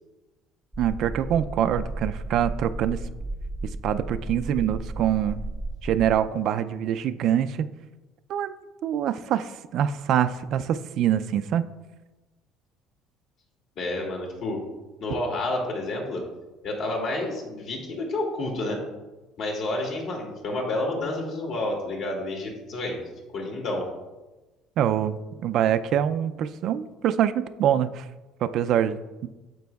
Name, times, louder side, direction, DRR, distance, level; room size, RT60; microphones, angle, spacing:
sound 1, 0.7-6.2, right 2 dB, ahead, 0.6 m, -34 dB
voice 1, 0.8-3.0 3.8-5.4 5.8-7.7 8.3-8.5 8.8-11.6 24.8-28.1 28.4-29.3, right 10 dB, 60° right, 11 dB, 0.4 m, -25 dB
voice 2, 13.8-14.6 15.0-16.2 16.6-18.8 19.4-23.0 23.3-23.9, left 2 dB, 60° left, 0 dB, 2.1 m, -29 dB
9.2 x 7.4 x 2.3 m, 1.1 s
cardioid pair, 120°, 0 cm